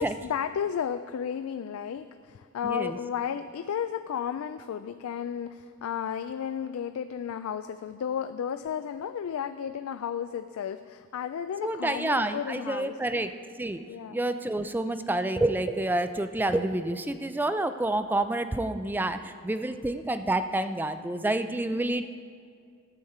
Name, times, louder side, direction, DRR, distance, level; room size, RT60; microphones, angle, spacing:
voice 1, 0.0-13.0 13.9-14.2, left 8 dB, 80° left, 11 dB, 0.3 m, -33 dB
voice 2, 2.6-3.0 11.6-13.3 13.6-13.8 14.1-22.1, right 2 dB, 10° right, 10 dB, 0.3 m, -28 dB
13.0 x 8.0 x 4.3 m, 2.2 s
head